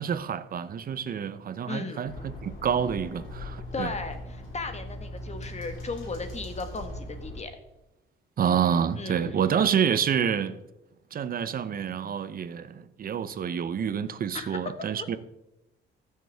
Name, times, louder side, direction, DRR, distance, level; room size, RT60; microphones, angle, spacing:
voice 1, 0.0-3.9 8.4-10.6 11.1-15.2, right 8 dB, 45° right, 0.7 m, -28 dB
voice 2, 1.7-2.1 3.7-7.5 9.0-9.4 14.3-14.6 15.0-15.1, left 3 dB, 35° left, 1.4 m, -36 dB
sound 1, 2.1-7.4, left 1 dB, 80° left, 3.4 m, -40 dB
14.5 x 6.6 x 3.4 m
cardioid pair, 90°, 20 cm